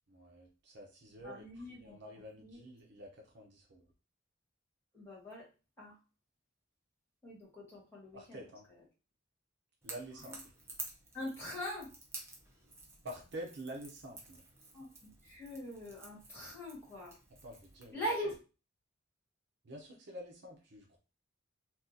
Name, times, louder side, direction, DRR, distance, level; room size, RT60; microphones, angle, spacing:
voice 1, 0.1-3.9 8.1-8.6 9.8-10.5 13.0-14.4 17.4-18.0 19.6-21.0, right 1 dB, 55° right, 1 dB, 0.7 m, -48 dB
voice 2, 1.2-2.0 2.4-2.6 4.9-5.5 5.8-6.0 7.2-8.4 8.7-8.8 10.2-10.4 11.1-11.9 14.7-17.2 17.9-18.4, equal, 10° left, -5 dB, 1.5 m, -42 dB
Crackle / Crack, 9.8-17.9, right 2 dB, 15° right, 0.6 m, -51 dB
2.8 x 2.4 x 3.8 m, 0.33 s
head